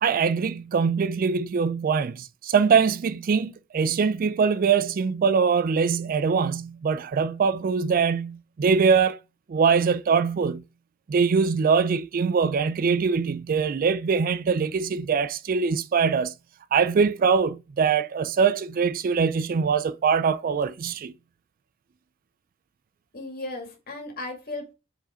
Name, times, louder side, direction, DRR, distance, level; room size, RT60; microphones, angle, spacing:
voice 1, 0.0-9.2 9.5-10.6 11.1-16.3 16.7-21.1, right 5 dB, 40° right, 0.3 m, -23 dB
voice 2, 23.1-24.7, left 2 dB, 45° left, 2.2 m, -36 dB
5.3 x 4.8 x 4.3 m
head